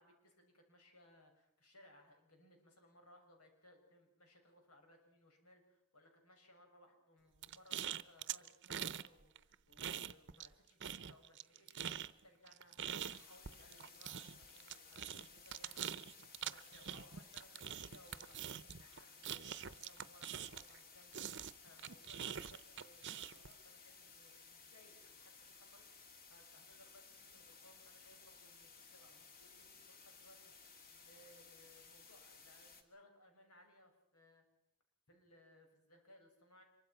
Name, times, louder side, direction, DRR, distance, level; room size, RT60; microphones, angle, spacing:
voice 1, 0.0-16.1 16.5-34.4 35.1-36.6, left 1 dB, 90° left, 4 dB, 6.6 m, -65 dB
sound 1, 7.4-9.1 9.4-10.5 10.8-20.8 21.1-23.5, right 9 dB, 55° right, 0.8 m, -44 dB
sound 2, 12.9-32.8, left 5 dB, 40° left, 2.8 m, -59 dB
26.0 x 24.0 x 5.9 m, 0.78 s
head